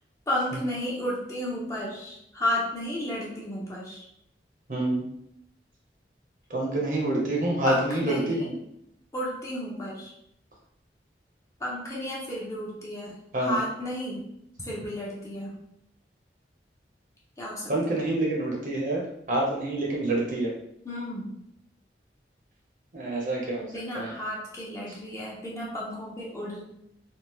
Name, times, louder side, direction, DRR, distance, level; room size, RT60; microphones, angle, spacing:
voice 1, 0.3-4.0 7.7-8.5 9.1-10.1 11.6-14.2 14.6-15.5 17.4-18.0 20.8-21.3 23.6-26.6, left 1 dB, 15° left, -5 dB, 0.7 m, -33 dB
voice 2, 4.7-5.0 6.5-8.5 13.3-13.6 17.7-20.5 22.9-23.7 23.9-24.1, right 1 dB, 45° right, -2 dB, 0.7 m, -27 dB
3.5 x 2.3 x 3.0 m, 0.78 s
head